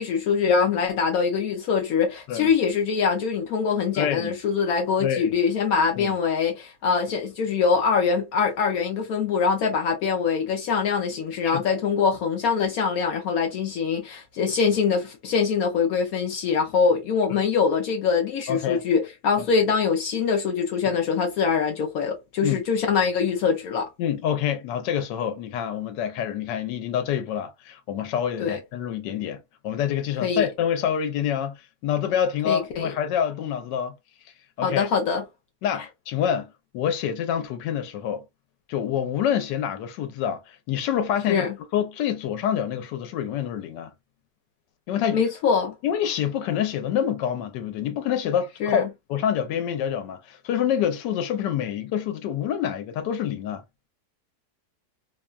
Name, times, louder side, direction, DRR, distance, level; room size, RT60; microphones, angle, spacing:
voice 1, 0.0-23.9 28.4-28.6 30.2-30.5 32.5-32.9 34.6-35.2 41.3-41.6 45.1-45.7 48.6-48.9, left 6 dB, 70° left, 0.9 m, -23 dB
voice 2, 4.0-4.3 5.0-5.3 6.0-6.1 11.4-11.8 18.5-18.8 19.4-19.5 22.4-22.6 24.0-34.0 34.6-34.9 35.6-38.2 38.7-41.5 41.7-43.9 44.9-45.2 45.8-53.6, left 9 dB, 85° left, 1.2 m, -27 dB
3.0 x 2.1 x 2.3 m
omnidirectional pair, 1.9 m